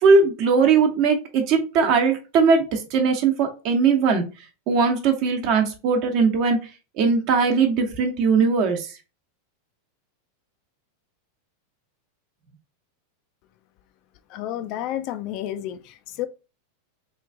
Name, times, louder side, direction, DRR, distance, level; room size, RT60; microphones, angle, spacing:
voice 1, 0.0-4.3 4.7-6.6 6.9-8.9, right 5 dB, 50° right, 0.9 m, -19 dB
voice 2, 14.3-16.3, left 12 dB, 50° left, 0.4 m, -31 dB
3.1 x 2.5 x 3.4 m
hypercardioid pair, 110°, 0 cm